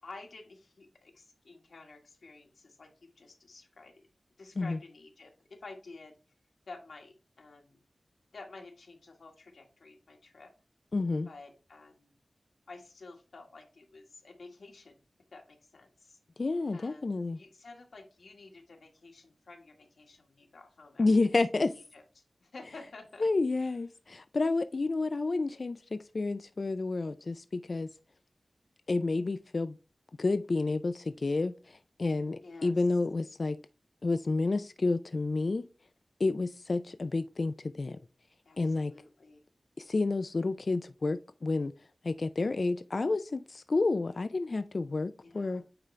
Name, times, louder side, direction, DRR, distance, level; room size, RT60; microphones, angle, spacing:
voice 1, 0.0-4.1 4.4-5.3 5.6-6.1 6.7-7.8 8.3-10.5 11.2-12.1 12.7-14.9 15.3-16.2 16.7-21.1 21.7-23.3 23.6-24.0 32.4-32.8 38.4-39.4 45.2-45.6, left 3 dB, 85° left, 1.6 m, -51 dB
voice 2, 10.9-11.3 16.4-17.4 21.0-21.7 23.2-27.9 28.9-29.8 30.2-33.6 34.0-35.7 36.2-38.0 38.6-38.9 39.8-41.7 42.0-45.6, left 3 dB, 60° left, 0.4 m, -30 dB
8.9 x 3.8 x 3.2 m
wide cardioid pair, 55°, 0 cm